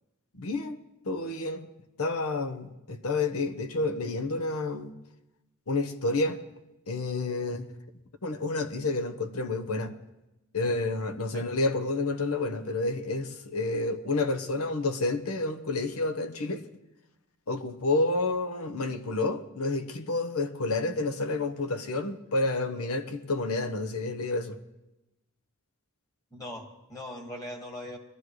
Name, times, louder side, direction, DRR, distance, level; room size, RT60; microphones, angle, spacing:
voice 1, 0.3-1.7 2.0-4.9 5.7-6.4 6.9-7.7 8.2-9.9 10.5-16.6 17.5-24.6, left 2 dB, 75° left, 1.0 m, -29 dB
voice 2, 26.3-28.0, left 1 dB, 15° left, 1.7 m, -40 dB
22.0 x 13.5 x 3.2 m
head